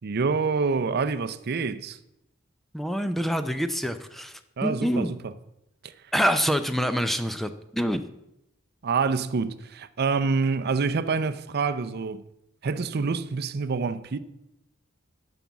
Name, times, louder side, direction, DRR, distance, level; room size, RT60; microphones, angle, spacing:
voice 1, 0.0-2.0 4.6-5.3 5.8-5.9 8.8-12.2 12.6-14.2, right 4 dB, 50° right, 0.5 m, -27 dB
voice 2, 2.7-5.1 6.1-8.1, equal, ahead, 0.4 m, -26 dB
9.1 x 5.9 x 7.2 m
head